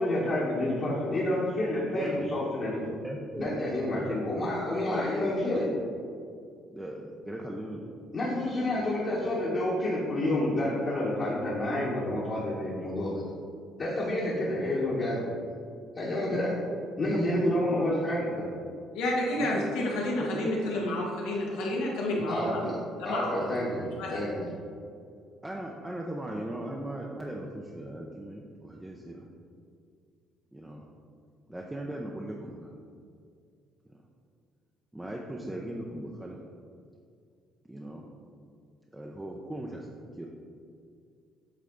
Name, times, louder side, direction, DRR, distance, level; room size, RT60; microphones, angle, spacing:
voice 1, 0.0-2.8 3.4-5.7 8.1-13.2 13.8-15.3 15.9-16.5 17.0-18.5 22.3-22.8 23.0-24.5, left 1 dB, 40° left, -7 dB, 1.3 m, -29 dB
voice 2, 1.9-2.3 3.0-3.5 3.9-4.2 4.6-5.2 5.5-5.6 6.7-7.8 17.0-17.8 19.4-19.5 20.2-20.8 25.4-29.3 30.5-30.8 31.5-32.7 33.9-34.0 34.9-36.4 37.7-38.0 38.9-40.3, right 1 dB, 10° right, -1 dB, 0.5 m, -38 dB
voice 3, 18.9-22.7 23.0-23.5 24.0-24.2, left 1 dB, 90° left, -3 dB, 1.5 m, -30 dB
8.2 x 3.3 x 3.9 m, 2.3 s
cardioid pair, 105°, 0 cm